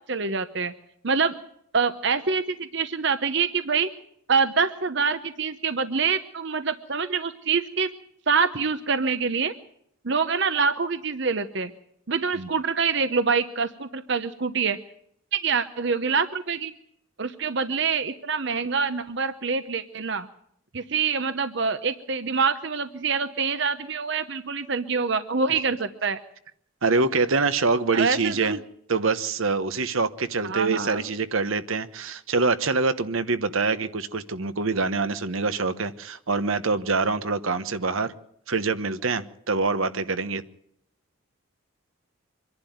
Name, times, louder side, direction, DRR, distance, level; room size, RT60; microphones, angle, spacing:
voice 1, 0.1-0.7 1.0-1.3 1.7-3.9 4.3-7.9 8.3-9.5 10.0-11.7 12.1-14.8 15.3-16.7 17.2-20.3 20.7-26.2 27.9-28.6 30.4-31.0, right 5 dB, 55° right, 0.9 m, -25 dB
voice 2, 26.8-28.6 28.9-38.1 38.5-40.4, right 4 dB, 75° right, 1.1 m, -25 dB
25.0 x 11.0 x 9.3 m
head